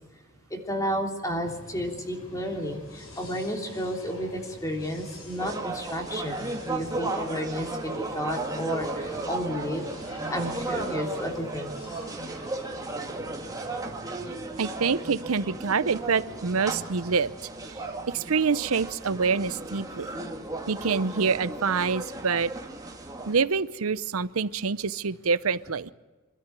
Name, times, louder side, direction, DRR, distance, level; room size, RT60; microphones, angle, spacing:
voice 1, 0.5-9.8 10.3-11.7, equal, 15° left, 2 dB, 3.2 m, -32 dB
sound 1, 1.4-17.3, left 1 dB, 80° left, 6.2 m, -48 dB
sound 2, 5.4-23.3, right 2 dB, 15° right, 2.2 m, -35 dB
voice 2, 14.6-17.3 18.1-20.1 20.7-22.5 23.3-25.9, right 5 dB, 85° right, 16 dB, 0.7 m, -26 dB
26.5 x 13.0 x 9.3 m, 1.3 s
head